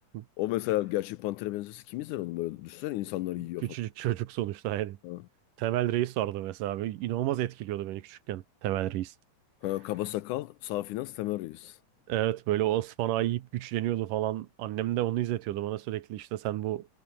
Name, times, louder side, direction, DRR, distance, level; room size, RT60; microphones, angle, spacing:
voice 1, 0.4-3.7 5.0-5.2 9.6-11.8, left 16 dB, 75° left, 2.0 m, -33 dB
voice 2, 3.6-5.0 5.6-9.1 12.1-16.9, right 14 dB, 75° right, 2.5 m, -30 dB
omnidirectional pair, 3.9 m